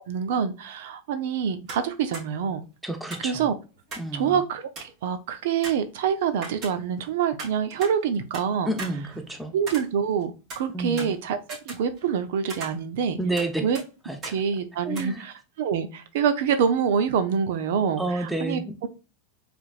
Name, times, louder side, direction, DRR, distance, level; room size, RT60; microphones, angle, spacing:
voice 1, 0.0-2.6 3.2-3.5 4.1-8.7 9.5-13.2 13.6-13.8 14.3-18.9, right 7 dB, 70° right, 0.7 m, -26 dB
sound 1, 1.7-1.9 2.1-2.3 3.1-4.2 4.4-4.5 4.8-5.0 5.6-7.1 7.4-8.5 8.8-10.2 10.5-12.2 12.5-13.5 13.7-13.9 14.2-14.4 14.9-15.0, right 3 dB, 35° right, 2.4 m, -39 dB
voice 2, 2.8-3.5 4.0-4.4 8.6-9.5 10.7-11.1 13.2-13.7 14.0-14.3 14.8-15.2 18.0-18.7, right 2 dB, 5° right, 0.8 m, -30 dB
4.6 x 3.4 x 2.4 m
supercardioid pair, 135°, 0 cm